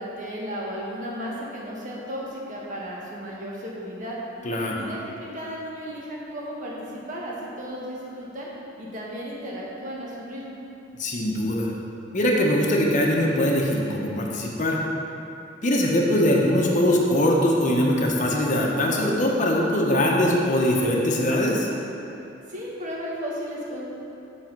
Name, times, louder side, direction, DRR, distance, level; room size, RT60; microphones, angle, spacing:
voice 1, 0.0-4.2 4.7-8.5 8.8-10.6 22.5-23.8, equal, 45° right, -4 dB, 1.4 m, -34 dB
voice 2, 4.4-4.8 11.0-11.7 12.1-14.8 15.6-21.7, left 1 dB, 40° left, -1 dB, 0.9 m, -22 dB
7.4 x 4.2 x 5.9 m, 2.8 s
head